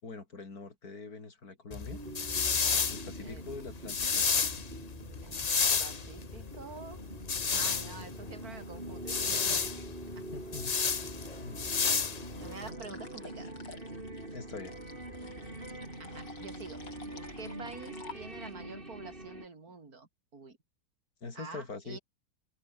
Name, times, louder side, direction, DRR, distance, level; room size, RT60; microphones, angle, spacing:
voice 1, 0.0-2.0 2.9-4.3 10.3-10.7 11.4-11.6 14.3-14.7 21.2-22.0, left 4 dB, 55° left, 4.0 m, -43 dB
sound 1, 1.7-12.7, left 5 dB, 35° left, 0.6 m, -31 dB
sound 2, 1.9-19.5, right 1 dB, 30° right, 5.9 m, -44 dB
voice 2, 5.2-7.0 7.5-9.9 10.2-10.3 12.4-13.5 15.2-15.4 16.0-16.8 17.4-20.6 21.4-22.0, right 4 dB, 55° right, 4.0 m, -47 dB
sound 3, 12.4-18.6, left 4 dB, 90° left, 4.2 m, -52 dB
open air
omnidirectional pair, 1.9 m